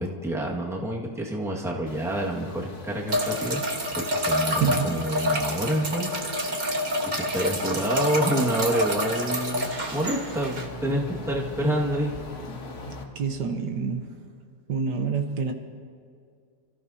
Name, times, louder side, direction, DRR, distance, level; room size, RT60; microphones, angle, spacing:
voice 1, 0.0-3.6 3.9-6.1 7.0-12.1, equal, ahead, -3 dB, 1.6 m, -28 dB
sound 1, 1.9-13.0, left 3 dB, 45° left, 1.6 m, -42 dB
sound 2, 3.1-10.7, equal, 30° right, 1.4 m, -28 dB
voice 2, 4.6-5.1 13.1-14.2 14.7-15.5, right 6 dB, 75° right, 5 dB, 1.7 m, -27 dB
29.0 x 14.5 x 2.8 m, 2.3 s
omnidirectional pair, 1.8 m